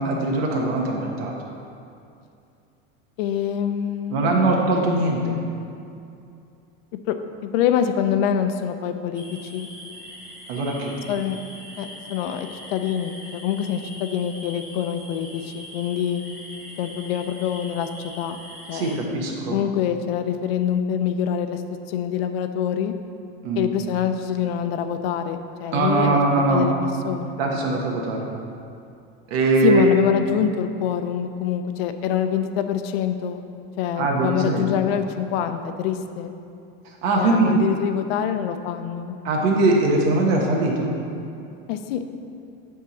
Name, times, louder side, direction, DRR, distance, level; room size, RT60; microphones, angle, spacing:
voice 1, 0.0-1.4 4.1-5.3 10.5-10.9 18.7-19.6 23.4-23.7 25.7-26.7 27.4-28.3 29.3-29.9 33.9-34.7 36.8-37.6 39.2-41.0, right 2 dB, 85° right, 0 dB, 1.3 m, -21 dB
voice 2, 3.2-4.5 7.1-7.2 7.5-9.2 9.5-9.7 11.1-11.4 11.8-16.2 16.8-17.9 18.2-18.4 18.7-19.0 19.5-21.6 21.9-22.9 23.6-26.2 26.5-27.4 29.6-33.4 33.8-36.3 37.2-39.2 41.7-42.0, left 9 dB, 85° left, 8 dB, 0.6 m, -25 dB
sound 1, 9.1-18.9, equal, 5° right, 1.4 m, -42 dB
8.5 x 3.7 x 5.9 m, 2.5 s
cardioid pair, 170°, 29 cm